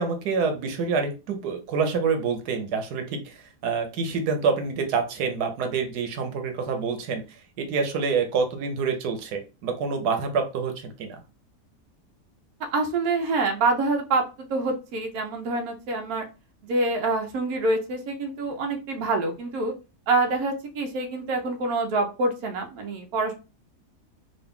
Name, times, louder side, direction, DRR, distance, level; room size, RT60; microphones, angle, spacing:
voice 1, 0.0-11.2, right 5 dB, 90° right, 5 dB, 1.3 m, -27 dB
voice 2, 12.7-16.2 16.6-19.7 20.1-23.3, right 3 dB, 75° right, 4 dB, 1.2 m, -26 dB
3.9 x 2.5 x 3.5 m, 0.30 s
omnidirectional pair, 1.6 m